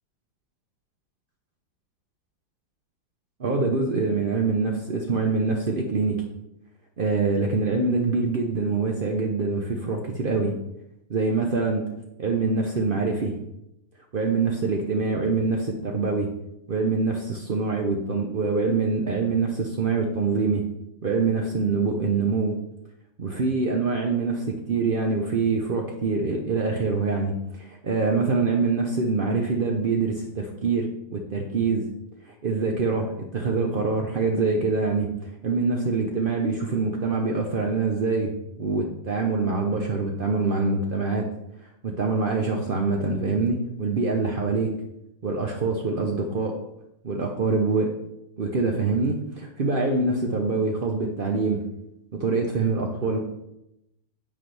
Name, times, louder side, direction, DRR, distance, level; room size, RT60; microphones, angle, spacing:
voice 1, 3.4-6.2 7.0-10.5 11.1-11.9 12.2-13.4 14.1-16.3 16.7-20.6 21.0-22.6 23.2-31.9 32.3-41.3 41.8-44.7 45.2-46.6 47.0-47.9 48.4-51.6 52.1-53.2, right 4 dB, 50° right, 1 dB, 0.6 m, -25 dB
9.9 x 8.8 x 3.4 m, 0.85 s
omnidirectional pair, 2.1 m